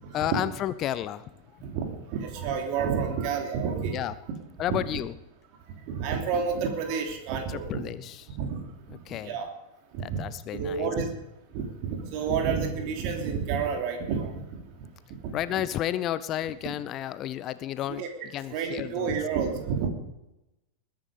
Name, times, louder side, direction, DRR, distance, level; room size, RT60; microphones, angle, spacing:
voice 1, 0.1-1.3 1.5-1.6 3.9-4.1 4.6-5.1 7.5-8.4 8.9-9.4 10.0-10.9 15.3-18.0 18.3-19.2, left 12 dB, 35° left, 16 dB, 0.6 m, -32 dB
voice 2, 1.6-4.0 4.7-4.8 5.9-7.9 8.4-8.6 9.2-9.5 9.9-10.2 10.5-11.1 11.5-14.4 15.2-15.4 18.0-18.1 18.5-19.9, right 6 dB, 45° right, 4 dB, 3.1 m, -29 dB
21.0 x 10.5 x 5.2 m, 0.94 s
figure-of-eight pair, 90°, 0 cm